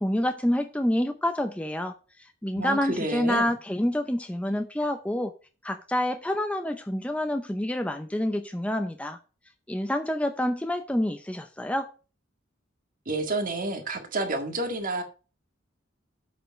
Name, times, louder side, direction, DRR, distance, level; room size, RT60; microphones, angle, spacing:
voice 1, 0.0-1.9 2.2-5.3 5.6-9.2 9.7-11.9, left 1 dB, 5° left, 0.6 m, -27 dB
voice 2, 2.6-3.5 13.1-15.0, right 2 dB, 45° right, 1.8 m, -29 dB
7.8 x 5.2 x 6.3 m
head